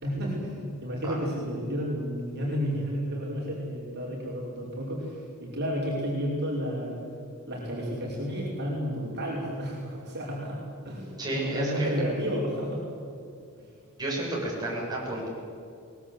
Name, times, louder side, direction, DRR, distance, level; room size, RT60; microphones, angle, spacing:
voice 1, 0.0-7.0 7.5-10.6 10.8-12.8 13.6-13.7, equal, 50° right, -4 dB, 5.5 m, -31 dB
voice 2, 11.2-12.0 14.0-15.3, right 1 dB, 20° right, -5 dB, 7.5 m, -31 dB
23.0 x 20.5 x 8.1 m, 2.4 s
head